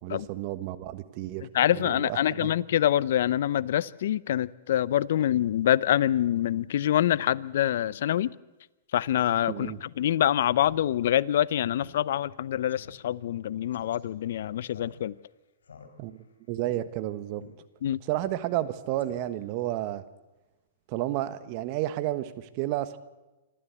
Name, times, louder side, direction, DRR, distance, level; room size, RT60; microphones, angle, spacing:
voice 1, 0.0-1.5 1.7-2.5 9.5-9.8 16.0-16.2 16.5-17.4 18.1-20.0 20.9-23.0, right 14 dB, 45° right, 13 dB, 1.3 m, -31 dB
voice 2, 1.5-8.3 8.9-15.1 17.8-18.0, left 11 dB, 65° left, 20 dB, 0.6 m, -25 dB
Speech synthesizer, 9.6-9.8 10.2-10.3 10.6-10.9 11.2-11.3 11.8-12.0 12.3-12.4 12.7-13.0 13.7-14.0 14.7-15.3 15.6-16.2 16.6-16.8 17.4-17.5 18.2-18.7 19.0-19.5, left 6 dB, 85° left, 3.9 m, -48 dB
26.5 x 12.5 x 8.3 m, 1.1 s
hypercardioid pair, 125°, 0 cm